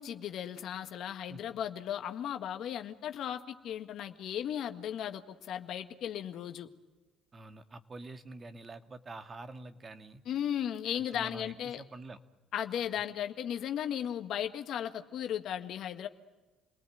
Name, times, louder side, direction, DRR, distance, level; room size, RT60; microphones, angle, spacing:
voice 1, 0.0-6.7 10.2-11.8 12.5-16.1, left 10 dB, 65° left, 7 dB, 1.8 m, -36 dB
voice 2, 7.3-10.2 10.9-12.2, right 2 dB, 30° right, 8 dB, 2.1 m, -47 dB
29.5 x 19.0 x 9.3 m, 1.2 s
supercardioid pair, 75°, 0 cm